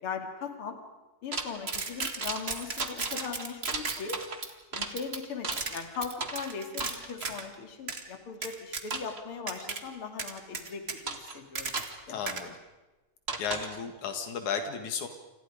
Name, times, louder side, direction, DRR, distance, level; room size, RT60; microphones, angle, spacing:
voice 1, 0.0-0.8 1.2-4.2 4.7-11.7 12.1-12.6, left 5 dB, 50° left, 5 dB, 3.4 m, -39 dB
sound 1, 1.3-7.5 7.9-8.0 8.4-9.2 9.5-9.8 10.2-12.0 12.3-12.4 13.3-13.8, right 4 dB, 25° right, 1.5 m, -34 dB
voice 2, 12.1-12.5 13.4-15.1, left 6 dB, 85° left, 6 dB, 3.2 m, -34 dB
29.5 x 27.0 x 5.1 m, 1.1 s
omnidirectional pair, 3.3 m